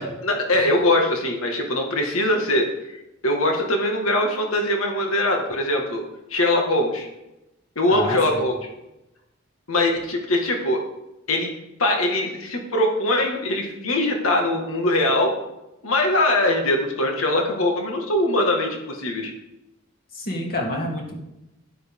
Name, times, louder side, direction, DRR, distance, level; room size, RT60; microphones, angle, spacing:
voice 1, 0.0-2.7 3.2-6.0 6.3-7.1 7.8-8.6 9.7-10.8 11.3-15.3 15.8-19.3, left 1 dB, 90° left, 2 dB, 1.8 m, -22 dB
voice 2, 7.9-8.4 20.1-21.2, left 1 dB, 45° left, -1 dB, 2.8 m, -28 dB
12.0 x 11.0 x 3.7 m, 0.91 s
head